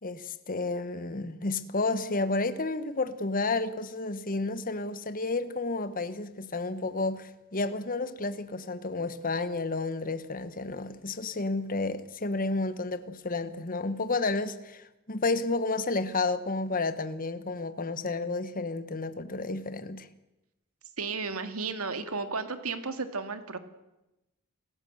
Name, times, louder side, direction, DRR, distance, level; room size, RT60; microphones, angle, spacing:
voice 1, 0.0-20.1, left 3 dB, 40° left, 1.2 m, -31 dB
voice 2, 21.0-23.6, right 4 dB, 75° right, 2.2 m, -33 dB
26.5 x 16.0 x 8.0 m
head